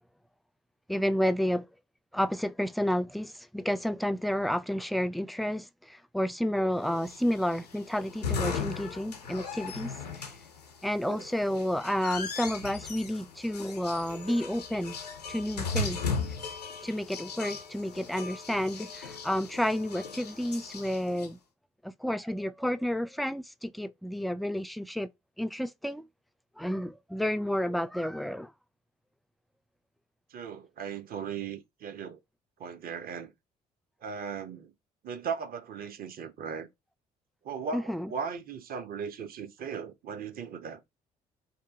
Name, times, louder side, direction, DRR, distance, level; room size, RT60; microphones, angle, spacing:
voice 1, 0.9-1.7 2.1-9.9 10.2-10.3 10.8-15.0 15.3-16.0 16.8-21.4 21.8-25.1 25.4-26.0 26.6-28.5 37.7-38.1, equal, ahead, 0.3 m, -30 dB
sound 1, 7.0-21.3, left 4 dB, 90° left, 0.5 m, -37 dB
voice 2, 30.3-32.2 32.6-33.3 34.0-34.7 35.0-36.7 37.4-40.8, right 6 dB, 50° right, 0.7 m, -37 dB
2.8 x 2.6 x 3.5 m
figure-of-eight pair, 45°, 20 cm